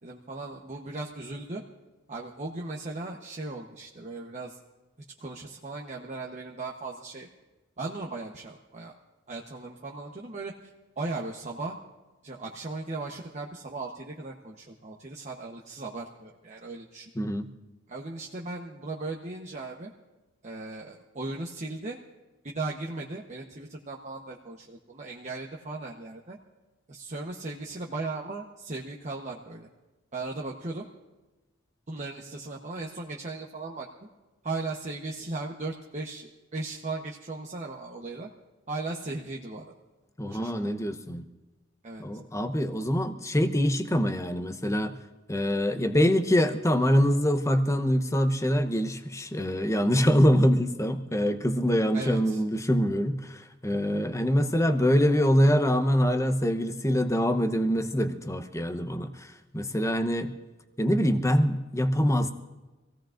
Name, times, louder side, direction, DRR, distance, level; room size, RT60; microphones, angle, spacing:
voice 1, 0.0-1.6 2.1-4.6 5.2-7.3 7.8-8.9 9.3-10.7 11.0-11.8 12.2-17.1 17.9-19.9 20.4-22.0 22.4-26.4 26.9-29.7 30.1-30.9 31.9-33.9 34.4-38.3 38.7-39.6 40.3-40.7 41.8-42.0 51.9-52.4, right 3 dB, 35° right, -1 dB, 1.0 m, -37 dB
voice 2, 17.2-17.5 40.2-41.2 42.0-45.0 45.3-60.3 60.8-62.3, equal, 15° left, 7 dB, 0.8 m, -24 dB
26.0 x 17.0 x 2.5 m, 1.1 s
head